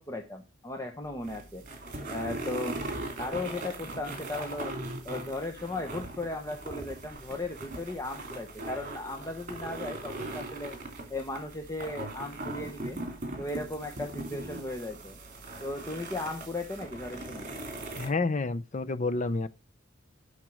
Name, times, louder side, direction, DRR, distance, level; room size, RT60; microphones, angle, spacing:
voice 1, 0.0-1.6 2.1-2.8 3.2-4.7 5.0-10.7 11.1-13.0 13.4-15.1 15.6-17.5, left 2 dB, 15° left, 0.9 m, -36 dB
sound 1, 1.0-18.1, right 2 dB, 40° right, 2.7 m, -40 dB
voice 2, 17.9-19.5, left 3 dB, 35° left, 0.5 m, -29 dB
9.0 x 6.0 x 6.3 m
head